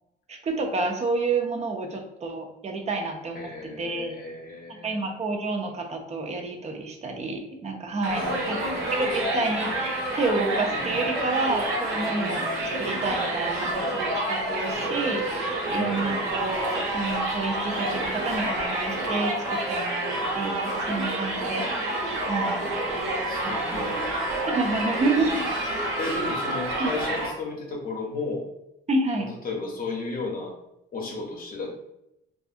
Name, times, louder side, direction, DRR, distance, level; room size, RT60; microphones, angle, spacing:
voice 1, 0.3-3.5 3.8-4.1 4.8-8.7 9.0-12.5 12.8-22.0 22.2-22.7 23.4-23.9 24.5-25.4 26.8-26.9 28.9-29.3, right 3 dB, 35° right, 3 dB, 0.5 m, -29 dB
voice 2, 3.3-5.0 8.1-8.9 15.7-16.5 22.4-24.0 26.0-28.5 29.2-30.5 30.9-31.8, left 3 dB, 45° left, -1 dB, 0.7 m, -34 dB
Crowd, 8.0-27.3, right 1 dB, 85° right, 0.9 m, -28 dB
2.6 x 2.4 x 2.4 m, 0.86 s
cardioid pair, 90°, 20 cm